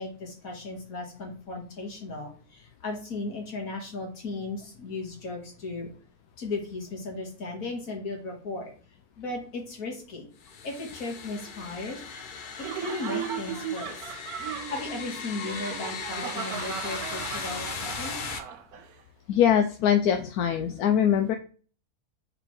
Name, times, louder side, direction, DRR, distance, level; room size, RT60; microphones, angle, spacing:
voice 1, 0.0-5.9 6.4-8.7 9.2-10.3 10.6-12.0 12.7-14.1 14.7-18.2, left 3 dB, 65° left, 1 dB, 2.0 m, -36 dB
sound 1, 10.4-18.4, left 6 dB, 50° left, 0.6 m, -38 dB
Laughter, 12.6-18.9, right 9 dB, 90° right, 1.2 m, -36 dB
voice 2, 19.3-21.3, left 9 dB, 85° left, 6 dB, 1.1 m, -22 dB
6.0 x 4.9 x 3.1 m, 0.40 s
omnidirectional pair, 1.6 m